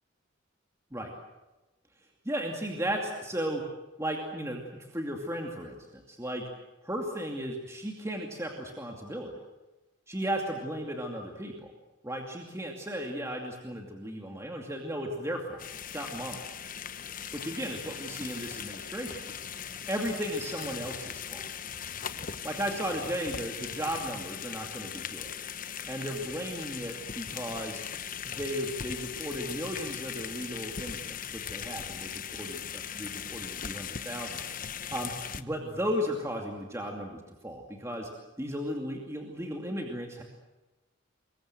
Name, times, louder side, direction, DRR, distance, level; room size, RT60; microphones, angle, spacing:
voice 1, 2.2-3.6 4.0-6.4 6.8-9.3 10.1-11.7 12.0-15.6 15.9-16.5 17.3-19.2 19.9-21.4 22.4-25.3 25.9-27.8 28.2-34.4 34.9-38.1 38.4-40.2, equal, 15° right, 1 dB, 2.5 m, -35 dB
sound 1, 15.6-35.4, left 8 dB, 40° left, 1.0 m, -39 dB
26.0 x 23.0 x 7.8 m, 1.1 s
head